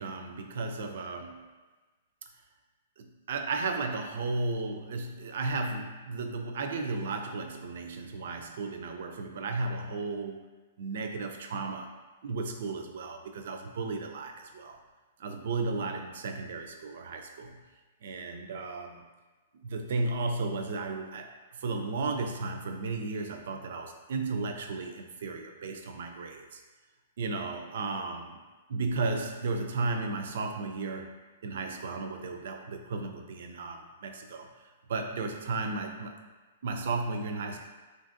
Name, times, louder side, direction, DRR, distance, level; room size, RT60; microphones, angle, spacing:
voice 1, 0.0-1.5 3.0-10.5 10.8-11.9 12.2-14.8 15.2-17.6 18.0-19.1 19.6-26.6 27.2-28.4 28.7-31.1 31.4-34.5 34.9-36.2 36.6-37.6, right 3 dB, 65° right, 5 dB, 0.3 m, -34 dB
3.2 x 2.5 x 2.5 m, 1.3 s
hypercardioid pair, 125°, 0 cm